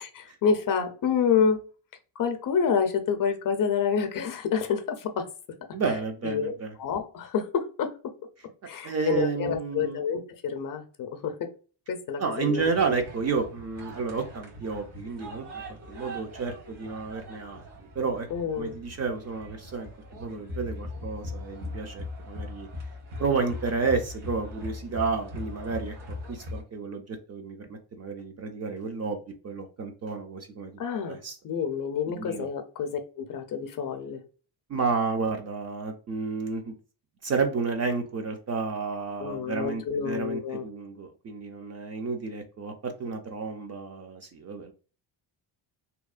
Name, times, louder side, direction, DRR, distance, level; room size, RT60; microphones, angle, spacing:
voice 1, 0.0-1.6 2.2-5.3 6.2-6.5 6.8-8.1 8.7-11.5 11.9-12.6 18.3-18.8 30.8-34.2 39.2-40.6, left 6 dB, 45° left, 0.5 m, -28 dB
voice 2, 5.7-6.7 8.8-10.0 12.2-15.5 15.9-17.6 18.0-18.3 18.6-22.7 23.2-25.9 26.3-29.2 29.4-30.7 31.1-31.4 32.1-32.5 34.7-36.8 37.2-44.7, right 4 dB, 35° right, 0.4 m, -31 dB
sound 1, 12.6-26.6, left 1 dB, 60° right, 1.2 m, -40 dB
2.8 x 2.1 x 2.3 m
cardioid pair, 120°, 46 cm